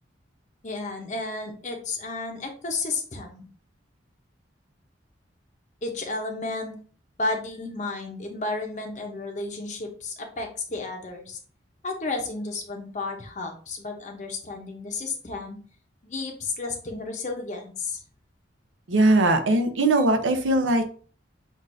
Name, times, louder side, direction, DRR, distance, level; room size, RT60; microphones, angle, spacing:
voice 1, 0.6-3.5 5.8-6.7 7.2-11.4 11.8-15.6 16.0-18.0, left 3 dB, 40° left, 3 dB, 0.8 m, -32 dB
voice 2, 18.9-20.9, right 2 dB, 85° right, 7 dB, 0.7 m, -20 dB
6.1 x 2.6 x 2.6 m, 0.42 s
head